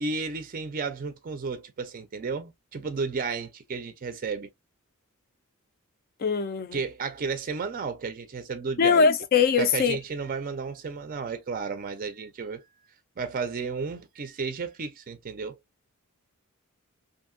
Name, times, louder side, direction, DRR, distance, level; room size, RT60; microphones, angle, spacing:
voice 1, 0.0-4.5 6.7-9.1 9.6-12.7 13.2-15.6, right 4 dB, 40° right, 0.4 m, -33 dB
voice 2, 6.2-6.8 8.8-10.0, left 5 dB, 40° left, 0.4 m, -22 dB
2.7 x 2.6 x 2.4 m
head